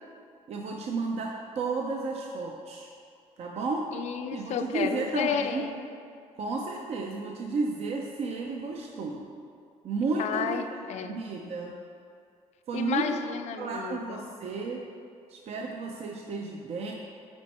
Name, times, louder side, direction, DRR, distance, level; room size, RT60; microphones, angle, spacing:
voice 1, 0.5-2.9 3.4-3.8 4.3-5.6 6.4-9.2 9.8-10.7 11.0-11.7 12.7-13.2 13.6-14.8 15.3-16.9, right 4 dB, 55° right, 0 dB, 0.6 m, -32 dB
voice 2, 3.9-5.9 10.2-11.2 12.7-14.3, left 8 dB, 65° left, 8 dB, 0.5 m, -32 dB
8.8 x 4.4 x 4.2 m, 2.3 s
cardioid pair, 120°, 13 cm